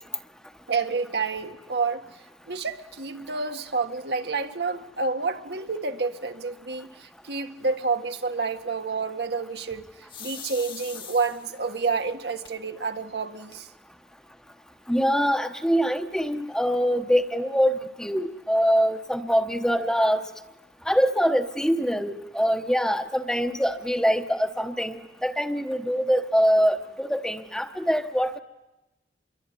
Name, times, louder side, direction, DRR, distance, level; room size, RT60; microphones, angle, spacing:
voice 1, 0.7-2.1 2.5-9.9 10.2-13.7, right 4 dB, 70° right, 1.7 m, -29 dB
sound 1, 10.1-11.7 12.4-12.5 13.0-13.1 13.3-13.9, left 7 dB, 30° left, 1.5 m, -41 dB
voice 2, 14.9-20.2 20.8-28.4, equal, 5° left, 1.0 m, -24 dB
26.5 x 23.0 x 9.7 m
head